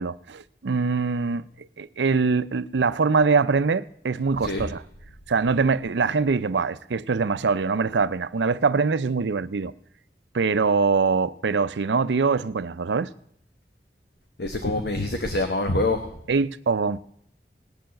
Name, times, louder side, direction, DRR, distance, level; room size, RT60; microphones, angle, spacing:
voice 1, 0.0-4.8 5.3-9.7 10.3-13.1 16.3-17.0, right 4 dB, 85° right, 0.5 m, -23 dB
voice 2, 14.4-16.2, left 2 dB, 65° left, 1.2 m, -25 dB
18.0 x 7.0 x 7.6 m
head